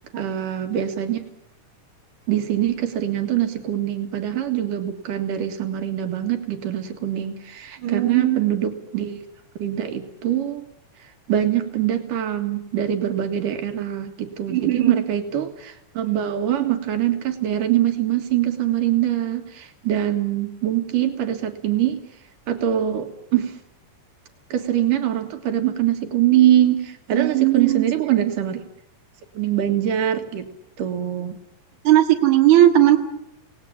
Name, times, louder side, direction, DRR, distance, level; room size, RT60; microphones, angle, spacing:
voice 1, 0.2-1.2 2.3-9.2 9.6-10.6 11.3-22.0 22.5-23.6 24.5-28.6 29.3-30.5 30.8-31.3, right 11 dB, 90° right, 6 dB, 3.3 m, -23 dB
voice 2, 7.8-8.4 14.5-14.9 27.1-27.9 31.8-33.0, right 13 dB, 65° right, 3 dB, 3.2 m, -17 dB
26.5 x 18.5 x 8.7 m, 0.78 s
omnidirectional pair, 3.6 m